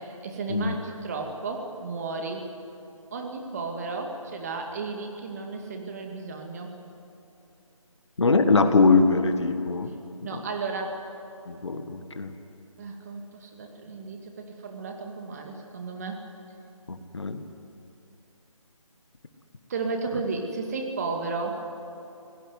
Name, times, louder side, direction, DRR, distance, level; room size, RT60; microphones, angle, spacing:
voice 1, 0.0-2.5 3.1-6.7 10.2-11.0 12.8-16.2 19.7-21.5, right 4 dB, 30° right, 3 dB, 2.3 m, -33 dB
voice 2, 8.2-9.9 10.3-10.4 11.5-12.3 16.9-17.4, left 3 dB, 55° left, 8 dB, 1.7 m, -22 dB
23.5 x 17.5 x 9.7 m, 2.8 s
figure-of-eight pair, 155°, 17 cm